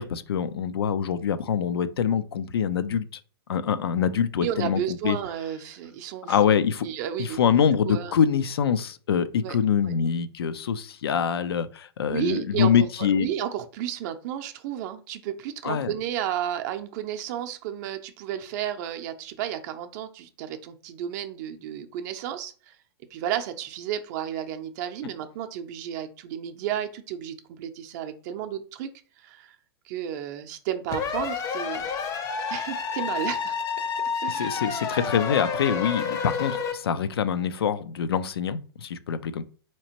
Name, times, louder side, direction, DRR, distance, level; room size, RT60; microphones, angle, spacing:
voice 1, 0.0-3.1 3.5-5.2 6.3-6.9 7.2-13.3 15.6-15.9 34.3-39.4, left 7 dB, 70° left, 0.4 m, -25 dB
voice 2, 4.4-6.4 6.8-7.4 7.8-8.2 9.4-9.6 9.8-9.9 12.1-12.9 13.1-22.7 23.1-28.9 29.2-29.6 29.9-31.9 32.5-33.6 34.2-34.5, right 10 dB, 45° right, 0.6 m, -32 dB
sound 1, 30.9-36.7, left 6 dB, 25° left, 0.6 m, -29 dB
4.1 x 2.9 x 2.9 m
figure-of-eight pair, 110°, 13 cm